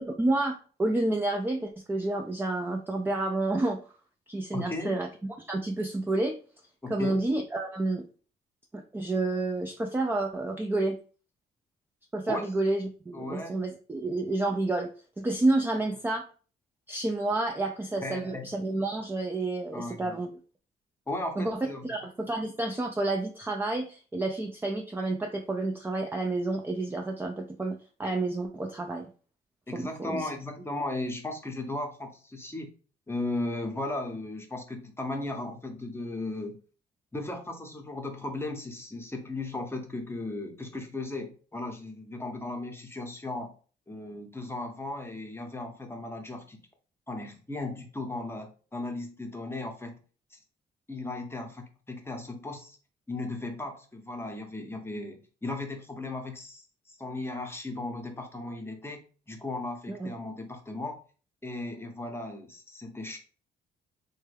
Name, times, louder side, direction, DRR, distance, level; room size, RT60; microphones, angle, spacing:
voice 1, 0.0-3.8 4.3-5.1 5.4-6.4 6.9-8.0 8.7-11.0 12.1-14.9 15.2-16.2 16.9-20.3 21.4-29.1 29.7-30.3 59.9-60.1, right 2 dB, 10° right, 3 dB, 0.4 m, -29 dB
voice 2, 4.5-5.0 6.8-7.2 12.3-12.5 13.1-13.6 18.0-18.4 19.7-20.2 21.1-21.8 29.7-32.7 33.1-36.6 37.1-43.5 43.9-46.6 47.1-50.0 50.3-50.4 50.9-52.8 53.1-61.0 61.4-63.2, left 2 dB, 10° left, 4 dB, 0.7 m, -36 dB
3.3 x 2.2 x 3.2 m, 0.38 s
cardioid pair, 90°, 20 cm